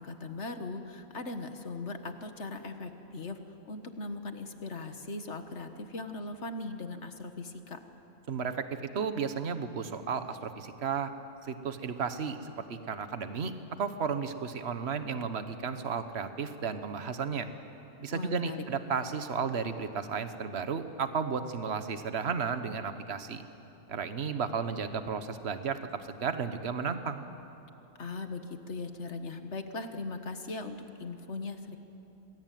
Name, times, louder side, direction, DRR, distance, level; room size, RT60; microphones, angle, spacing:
voice 1, 0.0-3.4 3.7-7.8 18.1-18.6 28.0-31.8, left 3 dB, 50° left, 7 dB, 1.7 m, -39 dB
voice 2, 8.3-8.7 8.9-11.1 11.4-13.5 13.8-17.5 18.0-23.4 23.9-27.2, right 6 dB, 45° right, 10 dB, 1.4 m, -33 dB
27.5 x 21.5 x 9.3 m, 3.0 s
omnidirectional pair, 1.5 m